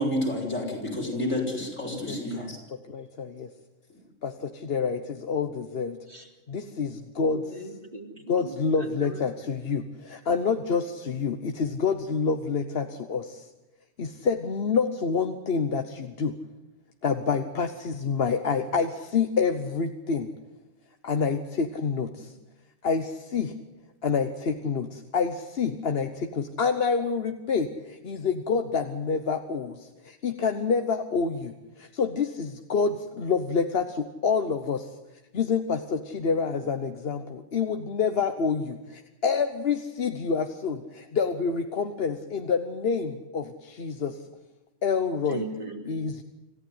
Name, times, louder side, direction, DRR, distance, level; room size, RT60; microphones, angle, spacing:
voice 1, 0.0-2.6, left 1 dB, 80° left, -1 dB, 6.4 m, -29 dB
voice 2, 1.8-2.2 2.7-3.5 4.2-6.0 6.5-7.6 8.3-13.5 14.0-16.3 17.0-20.3 21.0-22.3 22.8-23.5 24.0-34.9 35.3-44.2 44.8-45.4 45.8-46.2, left 5 dB, 50° left, 7 dB, 1.2 m, -28 dB
voice 3, 7.3-9.2 45.3-45.9, right 2 dB, 40° right, 2 dB, 3.0 m, -38 dB
26.5 x 14.5 x 9.6 m, 1.1 s
omnidirectional pair, 1.3 m